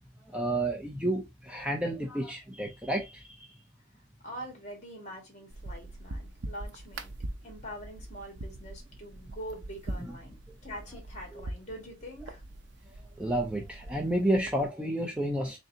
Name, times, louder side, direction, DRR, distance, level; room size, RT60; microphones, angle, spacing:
voice 1, 0.2-3.5 13.2-15.6, right 1 dB, 5° right, 0.4 m, -30 dB
voice 2, 4.2-7.1 7.4-10.4 10.6-12.4, equal, 35° left, 1.5 m, -44 dB
sound 1, 5.5-14.7, right 1 dB, 70° right, 0.6 m, -43 dB
3.8 x 3.3 x 2.7 m
head